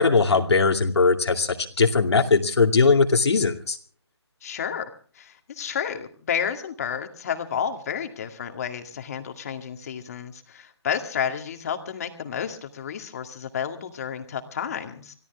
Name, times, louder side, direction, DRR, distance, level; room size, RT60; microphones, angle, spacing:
voice 1, 0.0-3.8, left 4 dB, 70° left, 5 dB, 2.5 m, -20 dB
voice 2, 4.4-4.9 5.1-15.1, left 8 dB, 35° left, 6 dB, 2.1 m, -31 dB
25.0 x 16.5 x 3.5 m, 0.41 s
hypercardioid pair, 165°, 15 cm